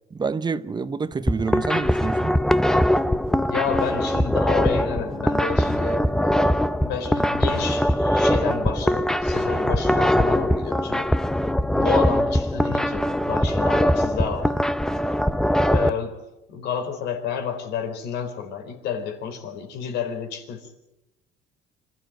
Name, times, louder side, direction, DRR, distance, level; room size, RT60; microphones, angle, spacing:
voice 1, 0.1-2.3, right 5 dB, 25° right, 1.0 m, -27 dB
sound 1, 1.1-15.9, equal, 5° left, 0.8 m, -22 dB
voice 2, 3.5-11.1 11.8-14.6 15.7-16.2 16.5-20.8, left 7 dB, 80° left, 4.3 m, -30 dB
26.0 x 13.0 x 9.1 m
cardioid pair, 110°, 17 cm